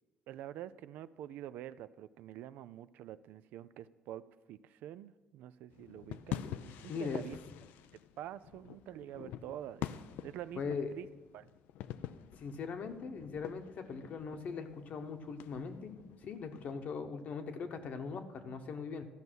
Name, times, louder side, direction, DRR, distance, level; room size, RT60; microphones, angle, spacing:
voice 1, 0.3-4.2 4.5-7.4 8.2-11.1 11.3-11.5, right 12 dB, 80° right, 15 dB, 0.4 m, -47 dB
sound 1, 5.7-16.7, left 11 dB, 85° left, 0.4 m, -46 dB
voice 2, 6.9-7.2 10.6-10.9 12.4-15.9 16.2-19.1, left 5 dB, 55° left, 6 dB, 1.1 m, -40 dB
13.5 x 5.4 x 6.2 m, 1.2 s
cardioid pair, 100°, 3 cm